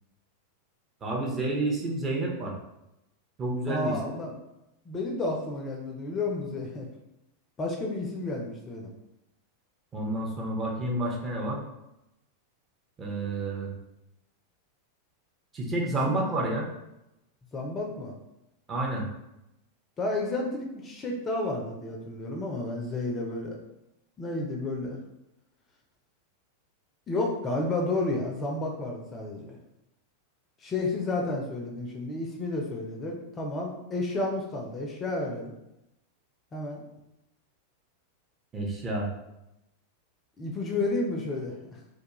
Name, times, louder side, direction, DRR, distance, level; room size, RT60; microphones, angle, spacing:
voice 1, 1.0-2.5 3.4-4.1 9.9-11.6 13.0-13.7 15.5-16.7 18.7-19.1 38.5-39.1, right 2 dB, 20° right, -2 dB, 0.6 m, -29 dB
voice 2, 3.7-4.3 4.9-6.9 7.6-8.9 16.0-16.2 17.5-18.1 20.0-23.6 24.2-25.0 27.1-29.6 30.6-35.5 36.5-36.8 40.4-41.5, left 2 dB, 25° left, 0 dB, 0.4 m, -31 dB
2.3 x 2.2 x 2.9 m, 0.89 s
figure-of-eight pair, 90°, 0 cm